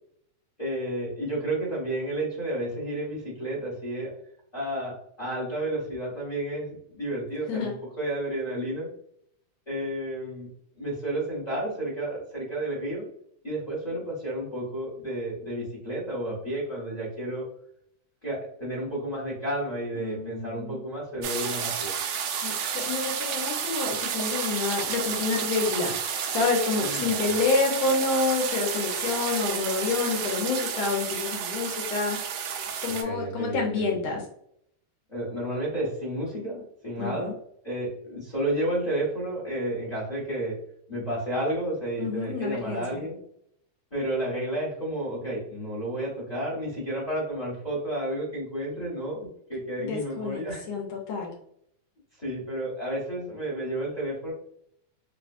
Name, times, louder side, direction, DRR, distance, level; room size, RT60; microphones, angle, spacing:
voice 1, 0.6-4.1 4.5-8.9 9.7-10.5 10.8-13.1 13.4-17.5 18.2-21.9 26.8-27.4 33.0-34.0 35.1-37.4 37.6-40.6 40.9-43.2 43.9-50.6 52.2-54.3, right 1 dB, 30° left, -7 dB, 0.6 m, -31 dB
voice 2, 20.0-20.8 22.4-32.2 32.8-34.2 37.0-37.3 42.0-43.0 49.8-50.4 50.7-51.3, left 4 dB, 75° left, -1 dB, 1.9 m, -28 dB
sound 1, 21.2-33.0, right 7 dB, 85° right, 2.0 m, -31 dB
4.9 x 2.2 x 2.5 m, 0.68 s
omnidirectional pair, 3.3 m